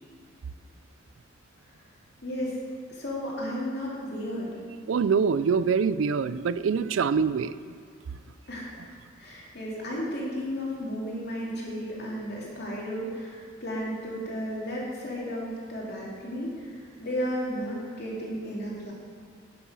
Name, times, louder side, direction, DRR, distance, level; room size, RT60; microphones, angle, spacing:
voice 1, 2.2-2.6 2.9-4.6 8.5-8.8 9.2-18.9, equal, 55° left, -4 dB, 2.9 m, -33 dB
voice 2, 4.9-7.5, right 6 dB, 85° right, 15 dB, 0.4 m, -24 dB
11.0 x 7.0 x 6.2 m, 2.1 s
head